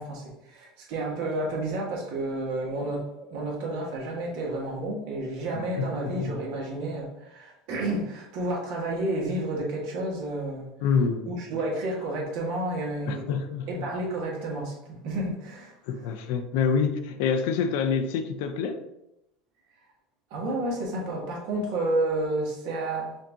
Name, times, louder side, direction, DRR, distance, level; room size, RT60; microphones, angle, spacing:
voice 1, 0.0-10.7 11.3-13.3 13.7-15.8 20.3-23.2, right 2 dB, 65° right, -2 dB, 1.6 m, -30 dB
voice 2, 5.5-6.4 10.8-11.3 13.1-13.9 15.9-18.8, left 6 dB, 75° left, 7 dB, 0.5 m, -27 dB
5.2 x 2.8 x 3.6 m, 0.89 s
supercardioid pair, 140°, 0 cm